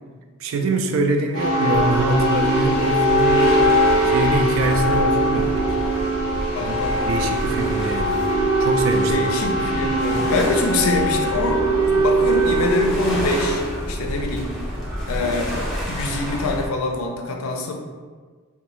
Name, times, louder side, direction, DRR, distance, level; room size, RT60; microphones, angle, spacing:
voice 1, 0.4-3.7 4.0-5.5 6.6-8.2 8.6-9.1, right 2 dB, 70° right, 5 dB, 0.3 m, -24 dB
sound 1, 1.3-15.6, right 1 dB, 85° right, 1.1 m, -21 dB
sound 2, 1.7-16.7, equal, ahead, 0.5 m, -30 dB
voice 2, 6.5-6.9 9.1-11.7 11.9-14.5 15.1-15.5 15.9-17.7, left 2 dB, 85° left, 2 dB, 0.4 m, -24 dB
2.7 x 2.2 x 3.0 m, 1.5 s
head